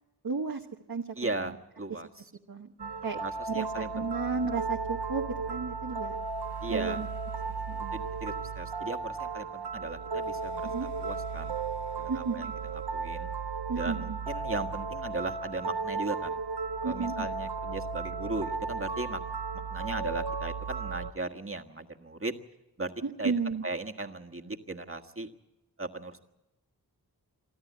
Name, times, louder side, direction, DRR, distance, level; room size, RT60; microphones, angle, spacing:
voice 1, 0.2-1.5 2.5-3.2 3.5-6.2 6.7-7.1 7.7-8.0 10.6-10.9 12.1-12.5 13.7-14.2 16.8-17.3 23.0-23.6, right 5 dB, 60° right, 2 dB, 1.2 m, -33 dB
voice 2, 1.2-2.2 3.2-4.1 6.6-7.0 7.9-11.6 12.0-12.5 12.9-13.3 13.8-16.4 16.8-19.2 19.7-22.3 22.8-22.9 23.2-23.3 23.6-25.3 25.8-26.2, right 2 dB, 35° right, 4 dB, 1.6 m, -37 dB
sound 1, 2.8-21.1, right 4 dB, 80° right, 0.7 m, -35 dB
24.5 x 13.5 x 9.4 m, 0.99 s
wide cardioid pair, 45°, 40 cm